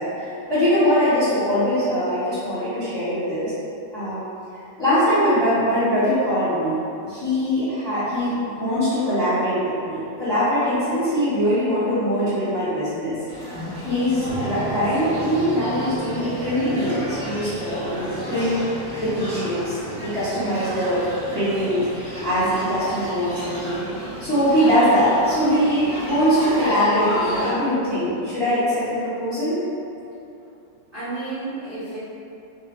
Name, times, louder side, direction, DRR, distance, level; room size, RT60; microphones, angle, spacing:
voice 1, 0.0-3.5 3.9-4.2 4.8-13.2 13.8-18.6 19.0-21.0 21.3-21.9 22.2-23.8 24.2-29.6, equal, 15° left, -15 dB, 1.1 m, -22 dB
sound 1, 13.3-27.5, equal, 20° right, 1.2 m, -33 dB
sound 2, 14.3-23.8, right 2 dB, 65° right, 1.0 m, -37 dB
voice 2, 30.9-32.0, right 3 dB, 40° right, -15 dB, 0.9 m, -32 dB
5.0 x 2.4 x 2.8 m, 2.7 s
omnidirectional pair, 2.0 m